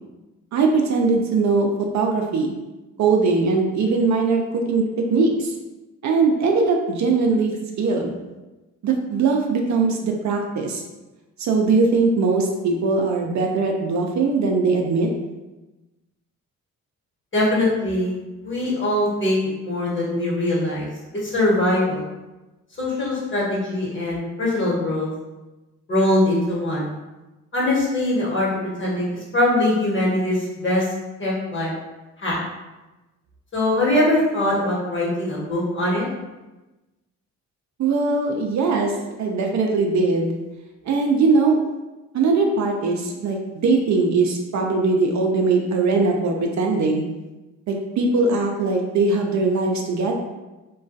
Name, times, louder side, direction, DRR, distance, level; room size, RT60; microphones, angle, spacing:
voice 1, 0.5-2.6 3.0-4.4 4.7-4.8 5.1-5.5 6.0-8.1 8.8-10.8 11.4-15.1 37.8-38.9 39.2-40.3 40.8-41.6 42.1-47.1 47.7-50.1, right 4 dB, 55° right, 1 dB, 0.4 m, -20 dB
voice 2, 17.3-19.4 19.6-20.9 21.2-22.0 22.8-25.1 25.9-26.9 27.5-30.8 31.2-31.7 32.2-32.4 33.5-36.0, left 1 dB, 35° left, -6 dB, 1.1 m, -22 dB
2.3 x 2.2 x 2.5 m, 1.1 s
supercardioid pair, 60°, 34 cm